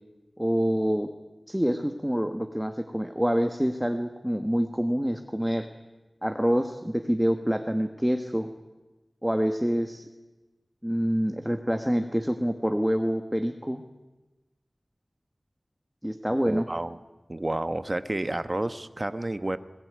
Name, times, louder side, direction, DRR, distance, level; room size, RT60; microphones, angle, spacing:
voice 1, 0.4-1.1 1.5-5.7 6.2-8.5 9.2-10.1 10.8-13.8 16.0-16.6, equal, 5° right, 6 dB, 1.4 m, -26 dB
voice 2, 16.4-17.0 17.3-19.6, right 1 dB, 40° right, 12 dB, 1.1 m, -30 dB
21.0 x 18.5 x 9.5 m, 1.1 s
wide cardioid pair, 55°, 0 cm